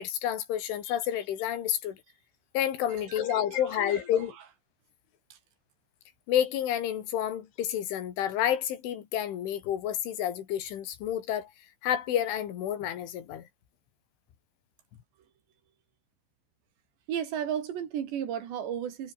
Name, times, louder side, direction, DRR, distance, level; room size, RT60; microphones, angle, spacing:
voice 1, 0.0-2.0 2.5-4.4 6.3-11.5 11.8-13.5, left 10 dB, 80° left, 5.0 m, -29 dB
voice 2, 2.9-3.6 3.9-4.0 5.3-5.4 17.1-19.1, right 9 dB, 65° right, 4.8 m, -34 dB
omnidirectional pair, 5.4 m